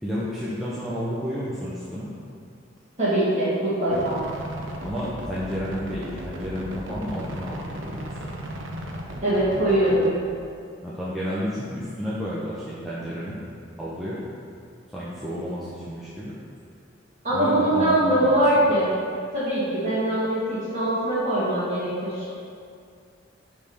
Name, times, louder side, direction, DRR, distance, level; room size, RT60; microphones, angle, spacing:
voice 1, 0.0-2.1 4.8-8.2 10.8-13.4 13.8-14.2 14.9-16.4 17.3-18.7, equal, ahead, -9 dB, 0.6 m, -31 dB
voice 2, 3.0-4.2 9.2-10.1 17.2-18.9 19.3-22.2, right 1 dB, 40° right, -10 dB, 1.5 m, -22 dB
sound 1, 3.9-10.1, right 1 dB, 75° right, 0.7 m, -36 dB
5.3 x 3.4 x 5.3 m, 2.4 s
head